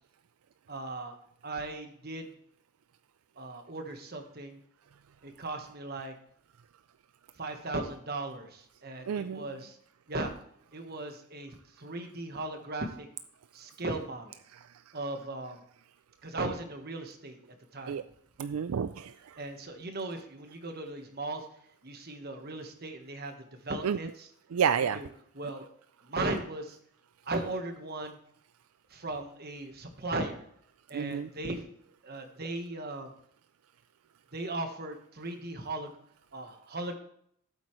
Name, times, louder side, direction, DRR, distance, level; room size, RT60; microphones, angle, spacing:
voice 1, 0.7-1.2 1.4-2.3 3.4-4.6 5.2-6.1 7.3-9.8 10.1-10.3 10.7-13.1 13.5-14.4 14.9-15.6 16.2-17.4 17.7-18.0 19.0-19.1 19.4-21.5 21.8-24.3 24.9-25.1 25.3-25.7 26.0-26.8 27.2-28.2 28.9-30.4 30.9-31.7 32.0-33.1 34.3-35.9 36.3-36.9, right 2 dB, 45° right, 5 dB, 1.3 m, -37 dB
voice 2, 9.1-9.4 17.9-18.0 18.4-19.1 23.8-24.0 24.5-25.0 30.9-31.3, right 7 dB, 80° right, 12 dB, 0.4 m, -29 dB
13.0 x 8.1 x 3.2 m, 0.67 s
head